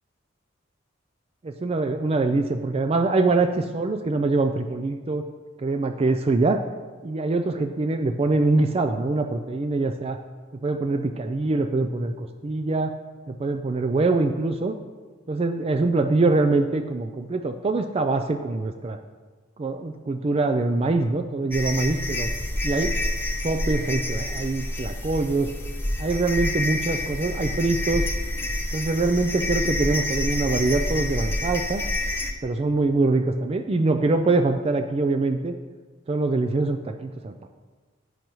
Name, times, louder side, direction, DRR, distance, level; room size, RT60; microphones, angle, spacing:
voice 1, 1.4-5.3 5.6-6.6 7.0-10.2 10.6-12.9 13.3-14.8 15.3-19.0 19.6-22.3 22.6-23.0 23.4-25.5 26.0-28.1 28.7-31.8 32.4-35.5 36.1-37.5, right 3 dB, 30° right, 7 dB, 0.4 m, -24 dB
sound 1, 21.5-32.3, left 1 dB, 10° left, 0.7 m, -28 dB
10.0 x 9.5 x 3.1 m, 1.4 s
head